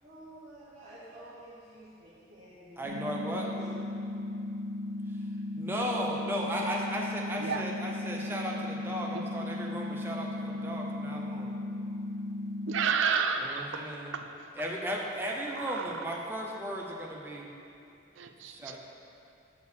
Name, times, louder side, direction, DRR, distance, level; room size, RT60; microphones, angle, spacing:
voice 1, 0.0-3.2 3.6-3.7, right 1 dB, 35° right, -12 dB, 1.4 m, -50 dB
voice 2, 2.8-3.5 5.5-11.5 13.4-14.1 14.6-17.5 18.5-18.8, equal, 10° right, -2 dB, 0.6 m, -35 dB
sound 1, 2.8-12.9, left 2 dB, 55° right, 1.1 m, -36 dB
voice 3, 12.7-14.3 15.6-15.9 18.2-18.8, right 6 dB, 70° right, 7 dB, 0.5 m, -31 dB
6.9 x 4.3 x 6.7 m, 2.7 s
head